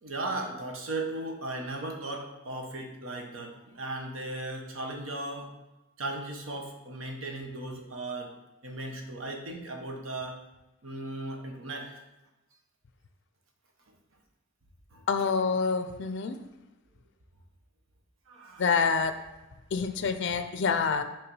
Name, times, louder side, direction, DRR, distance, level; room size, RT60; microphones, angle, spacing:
voice 1, 0.0-5.5 6.0-8.3 8.6-10.4 10.8-12.0 14.9-15.0 18.3-18.7, right 2 dB, 75° right, 2 dB, 1.0 m, -37 dB
voice 2, 15.1-16.4 18.6-19.2 19.7-21.0, left 5 dB, 60° left, 9 dB, 0.5 m, -27 dB
5.8 x 3.5 x 5.4 m, 1.0 s
head